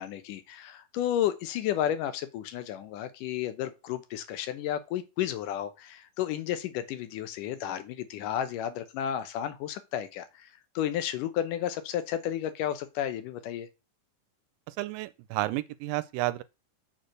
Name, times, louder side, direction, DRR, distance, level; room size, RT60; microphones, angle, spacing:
voice 1, 0.0-10.5 10.8-13.7, left 11 dB, 80° left, 2.4 m, -32 dB
voice 2, 14.8-16.4, right 17 dB, 90° right, 2.3 m, -31 dB
7.3 x 4.5 x 6.3 m
omnidirectional pair, 3.8 m